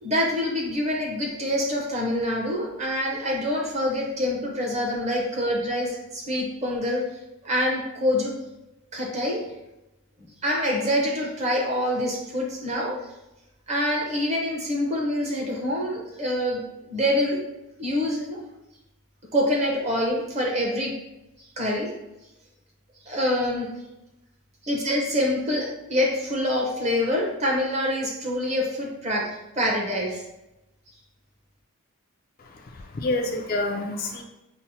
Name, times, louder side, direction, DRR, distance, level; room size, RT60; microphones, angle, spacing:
voice 1, 0.0-7.0 7.4-8.3 8.9-9.4 10.4-13.0 13.7-16.6 16.9-17.4 17.8-18.4 19.3-20.9 21.6-21.9 23.1-23.7 24.6-30.2, left 1 dB, 30° right, -2 dB, 0.8 m, -26 dB
voice 2, 32.4-34.2, left 2 dB, 40° left, 3 dB, 0.3 m, -28 dB
5.7 x 2.0 x 2.8 m, 0.95 s
head